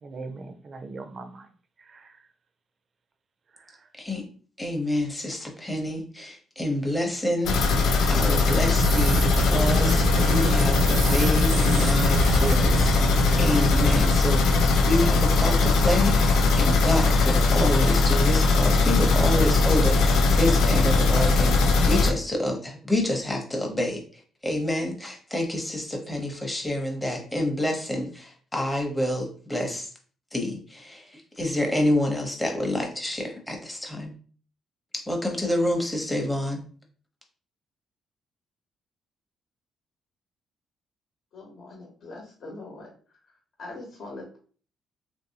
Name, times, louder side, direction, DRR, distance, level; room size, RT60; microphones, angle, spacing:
voice 1, 0.0-1.5 1.8-2.2 3.5-3.9, right 3 dB, 45° right, 8 dB, 0.5 m, -41 dB
voice 2, 4.6-7.5 8.0-24.0 24.4-29.9 30.3-34.1 34.9-36.6, left 1 dB, 10° left, 1 dB, 0.8 m, -28 dB
sound 1, 7.4-22.1, left 3 dB, 85° left, 0.4 m, -20 dB
sound 2, 8.8-14.0, right 4 dB, 85° right, 0.8 m, -28 dB
voice 3, 41.3-42.9 43.6-44.4, left 2 dB, 60° left, 0 dB, 1.0 m, -41 dB
3.1 x 2.6 x 2.8 m, 0.42 s
cardioid pair, 90°, 0 cm